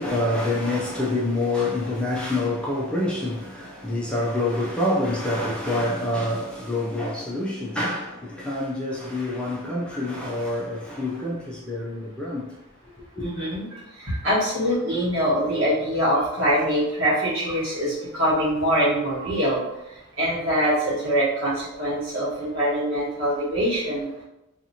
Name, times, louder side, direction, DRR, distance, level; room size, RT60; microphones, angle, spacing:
voice 1, 0.0-12.6 13.1-13.3, left 1 dB, 5° left, 0.4 m, -26 dB
voice 2, 13.2-13.6 14.0-19.6 20.2-24.1, equal, 65° right, 1.3 m, -23 dB
2.8 x 2.4 x 2.7 m
head